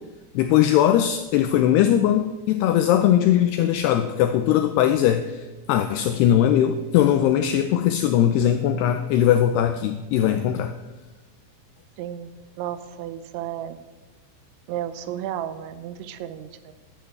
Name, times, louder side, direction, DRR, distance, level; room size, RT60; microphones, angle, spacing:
voice 1, 0.3-5.4 5.7-10.8, left 11 dB, 85° left, 9 dB, 2.3 m, -20 dB
voice 2, 12.0-13.8 14.7-16.8, right 11 dB, 85° right, 13 dB, 3.1 m, -33 dB
10.5 x 8.8 x 8.9 m, 1.2 s
omnidirectional pair, 5.3 m